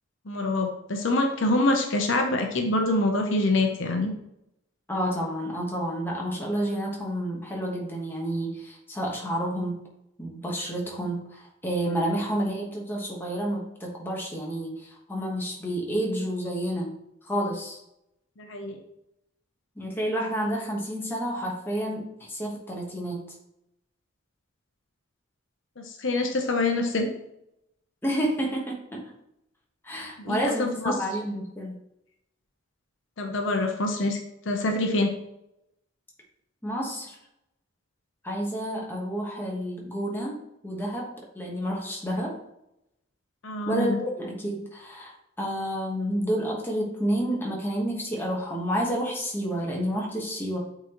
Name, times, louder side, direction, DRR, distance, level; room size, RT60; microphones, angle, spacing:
voice 1, 0.3-4.1 18.4-18.8 25.8-27.1 30.2-30.7 33.2-34.2 34.5-35.1 43.4-44.0, left 2 dB, 65° left, 4 dB, 0.8 m, -25 dB
voice 2, 4.9-9.8 10.2-16.9 17.2-17.8 19.8-23.2 28.0-29.1 29.8-31.7 36.6-37.2 38.2-42.4 43.7-50.6, equal, 10° left, -2 dB, 1.3 m, -30 dB
8.3 x 3.8 x 3.0 m, 0.82 s
head